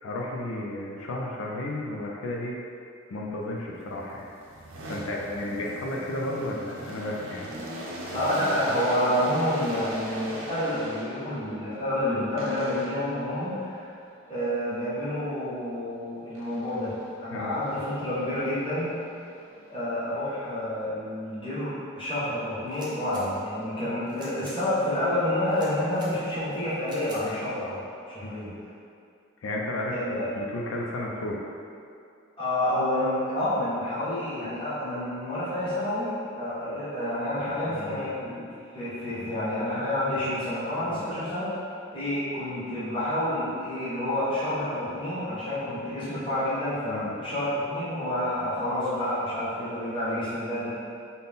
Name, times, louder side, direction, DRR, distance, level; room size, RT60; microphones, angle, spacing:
voice 1, 0.0-2.6 3.1-4.3 4.9-7.5 17.3-17.6 27.2-27.4 28.2-28.4 29.4-31.5 36.6-36.8 37.4-38.0 39.5-39.6 40.9-41.1 46.9-47.1, left 1 dB, 85° left, -2 dB, 0.4 m, -33 dB
sound 1, 3.8-11.5 12.4-13.2 16.3-17.2 17.6-20.0, right 1 dB, 80° right, 0.6 m, -40 dB
voice 2, 8.1-13.9 14.3-19.0 19.7-27.8 28.1-28.5 29.9-30.2 32.4-50.7, left 1 dB, 25° left, -12 dB, 1.1 m, -29 dB
sound 2, 22.7-23.2 24.1-24.6 25.5-26.1 26.9-27.2, right 1 dB, 20° right, 0.5 m, -47 dB
4.0 x 2.1 x 3.6 m, 2.4 s
head